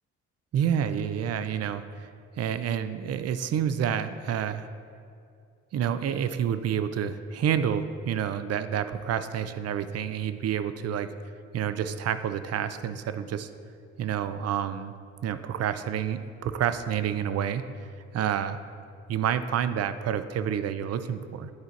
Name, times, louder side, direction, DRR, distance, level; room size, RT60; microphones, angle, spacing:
voice 1, 0.5-2.1 2.4-4.7 5.7-11.1 11.5-13.5 14.0-15.0 15.2-17.6 18.1-18.5 19.1-21.5, right 9 dB, 55° right, 12 dB, 0.5 m, -29 dB
9.5 x 4.4 x 4.1 m, 2.4 s
cardioid pair, 90°, 30 cm